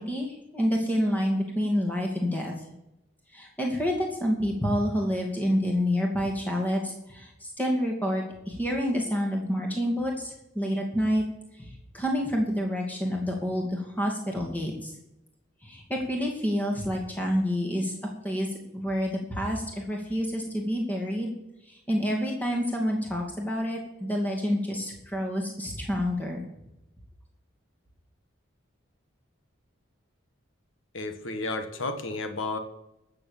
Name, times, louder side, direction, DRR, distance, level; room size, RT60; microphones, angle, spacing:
voice 1, 0.0-2.5 3.3-11.2 11.6-14.9 15.6-17.9 18.2-21.3 21.7-26.4, equal, 10° left, 0 dB, 2.4 m, -28 dB
voice 2, 30.9-32.6, left 2 dB, 75° left, 7 dB, 1.5 m, -32 dB
16.0 x 6.8 x 7.3 m, 0.89 s
head